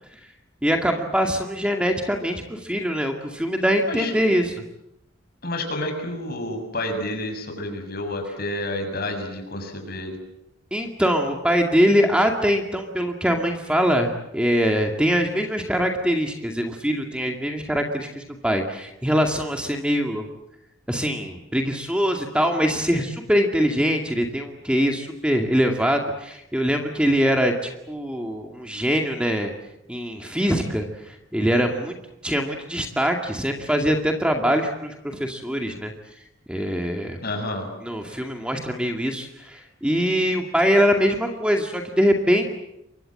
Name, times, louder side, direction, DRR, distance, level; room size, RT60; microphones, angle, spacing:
voice 1, 0.6-4.5 10.7-20.3 20.9-29.5 29.9-32.0 32.2-35.9 36.5-37.2 37.8-42.5, equal, 5° right, 3 dB, 2.2 m, -23 dB
voice 2, 5.4-10.2 37.2-37.7, left 1 dB, 50° left, 5 dB, 7.0 m, -29 dB
29.5 x 24.0 x 7.8 m, 0.84 s
head